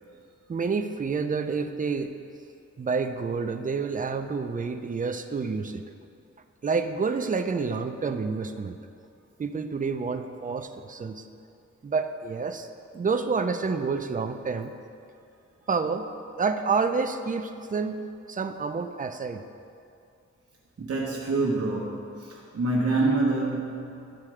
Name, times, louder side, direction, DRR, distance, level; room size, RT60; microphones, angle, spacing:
voice 1, 0.5-2.1 2.8-5.8 6.6-8.8 9.4-11.3 11.8-12.7 12.9-14.7 15.7-16.1 16.4-18.0 18.3-19.4, right 4 dB, 30° right, 8 dB, 0.5 m, -28 dB
voice 2, 20.8-24.2, right 2 dB, 55° right, -5 dB, 1.1 m, -27 dB
11.5 x 4.3 x 4.9 m, 2.5 s
wide cardioid pair, 105°, 29 cm